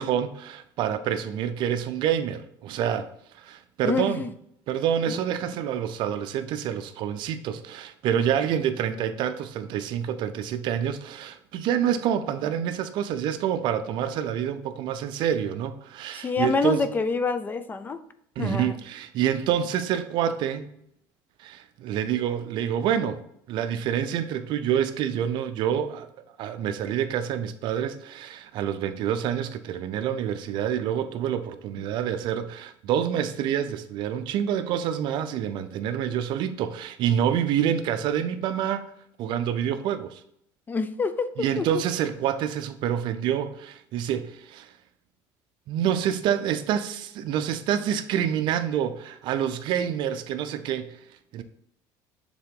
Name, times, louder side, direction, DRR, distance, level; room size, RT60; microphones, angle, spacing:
voice 1, 0.0-3.1 3.4-4.2 4.7-16.8 18.4-20.7 21.4-23.2 23.5-26.1 26.4-38.9 39.2-40.2 41.4-44.7 45.7-50.9 51.3-51.4, right 9 dB, 55° right, 0.6 m, -27 dB
voice 2, 3.8-4.3 5.1-5.2 16.1-18.0 18.4-18.8 40.7-41.3 41.6-41.8, left 4 dB, 20° left, 0.4 m, -27 dB
7.2 x 3.7 x 3.7 m
cardioid pair, 145°, 9 cm